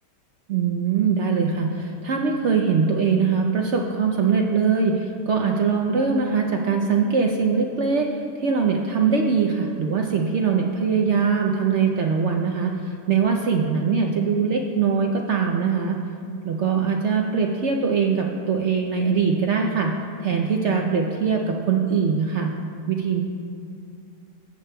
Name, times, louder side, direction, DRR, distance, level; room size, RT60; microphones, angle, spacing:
voice 1, 0.5-16.0 16.4-19.9 20.2-22.5 22.9-23.2, right 5 dB, 70° right, 1 dB, 0.6 m, -22 dB
15.0 x 8.2 x 2.2 m, 2.3 s
omnidirectional pair, 1.8 m